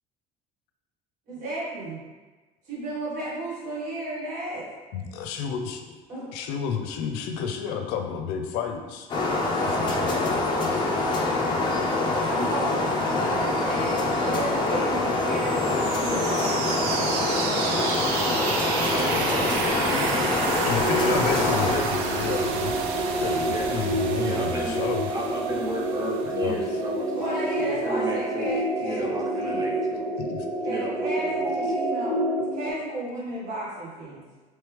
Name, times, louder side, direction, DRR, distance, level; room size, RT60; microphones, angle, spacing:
voice 1, 1.3-2.0 2.7-4.7 6.1-6.3 12.2-18.4 27.2-29.7 30.6-32.2 32.5-34.2, right 1 dB, 50° right, -7 dB, 1.4 m, -34 dB
voice 2, 4.9-6.0 6.3-9.1 9.6-10.7 20.6-22.7 23.2-25.1 26.3-26.6 30.2-30.4, left 7 dB, 85° left, 5 dB, 0.5 m, -31 dB
sound 1, 9.1-21.7, left 2 dB, 30° left, 0.5 m, -25 dB
sound 2, 15.3-27.0, right 5 dB, 85° right, 0.4 m, -31 dB
voice 3, 18.7-22.4 23.5-23.8 24.2-24.8 25.1-28.5 28.8-30.1 30.6-31.6, right 1 dB, 20° right, -1 dB, 0.5 m, -35 dB
sound 3, 20.8-32.7, right 1 dB, 5° left, 0.8 m, -28 dB
3.1 x 3.1 x 3.5 m, 1.3 s
cardioid pair, 160°, 16 cm